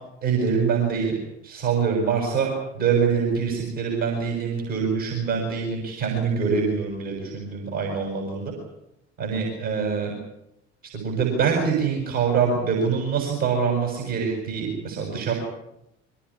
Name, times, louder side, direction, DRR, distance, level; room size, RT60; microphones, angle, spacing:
voice 1, 0.2-1.1 1.4-2.5 2.7-8.5 9.2-10.2 10.9-15.3, right 6 dB, 70° right, 0 dB, 7.2 m, -24 dB
23.0 x 19.0 x 10.0 m, 0.83 s
figure-of-eight pair, 55°, 35 cm